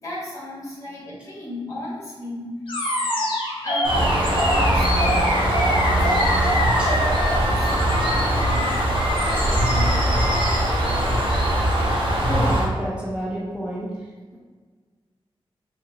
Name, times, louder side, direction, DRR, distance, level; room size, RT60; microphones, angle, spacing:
voice 1, 0.0-2.5 3.6-4.8 5.1-10.0 11.2-11.7, left 1 dB, 35° left, -7 dB, 1.4 m, -36 dB
Animal, 2.7-10.6, left 1 dB, 55° left, 0.9 m, -25 dB
Bird, 3.8-12.6, right 1 dB, 55° right, 0.9 m, -21 dB
voice 2, 12.2-13.9, equal, 10° right, -6 dB, 0.6 m, -29 dB
4.0 x 2.8 x 2.7 m, 1.5 s
wide cardioid pair, 100°, 10 cm